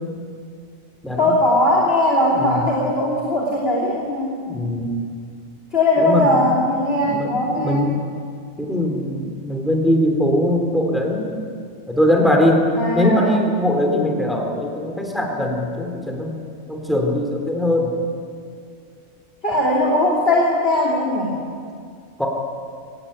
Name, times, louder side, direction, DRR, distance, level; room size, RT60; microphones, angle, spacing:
voice 1, 1.2-4.4 5.7-7.9 12.8-13.3 19.4-21.4, left 1 dB, 55° left, -3 dB, 3.4 m, -19 dB
voice 2, 4.5-5.0 6.0-6.3 7.0-8.1 8.6-11.3 11.9-12.7 12.9-16.4 16.7-17.9 22.2-22.3, left 1 dB, ahead, 1 dB, 3.5 m, -21 dB
24.0 x 18.5 x 9.0 m, 2.2 s
omnidirectional pair, 1.2 m